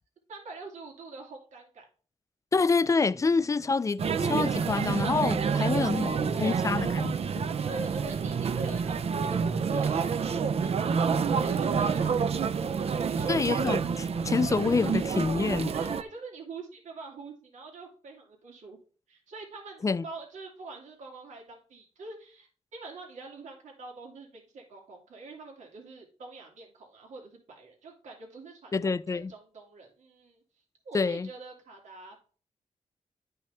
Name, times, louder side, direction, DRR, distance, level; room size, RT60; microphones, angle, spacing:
voice 1, 0.3-1.9 5.3-6.8 7.6-9.0 9.3-11.0 11.3-13.7 15.7-18.8 19.1-30.4 30.8-32.2, right 3 dB, 85° right, 2.6 m, -44 dB
voice 2, 2.5-6.1 6.4-7.1 13.3-13.8 14.2-15.7 19.8-20.0 28.7-29.3 30.9-31.3, left 4 dB, 25° left, 0.4 m, -27 dB
sound 1, 4.0-16.0, right 6 dB, 55° right, 0.6 m, -28 dB
11.5 x 5.6 x 3.4 m
cardioid pair, 95°, 12 cm